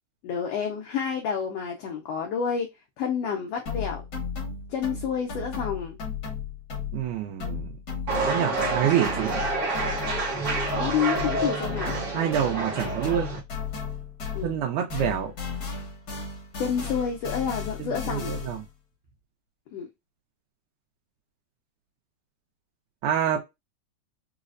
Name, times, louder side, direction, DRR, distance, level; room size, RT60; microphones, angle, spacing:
voice 1, 0.2-2.7 3.0-4.0 4.7-6.0 10.7-12.1 14.3-14.6 16.6-18.4 19.7-19.9, left 7 dB, 85° left, 1.4 m, -29 dB
sound 1, 3.7-7.1 7.4-14.6 14.9-18.7, left 5 dB, 65° left, 0.9 m, -35 dB
voice 2, 6.9-7.7 8.1-9.3 12.1-13.3 14.4-15.3 18.1-18.6 23.0-23.4, right 10 dB, 80° right, 1.9 m, -26 dB
sound 2, 8.1-13.4, right 3 dB, 55° right, 0.8 m, -28 dB
4.8 x 2.0 x 2.4 m
omnidirectional pair, 3.4 m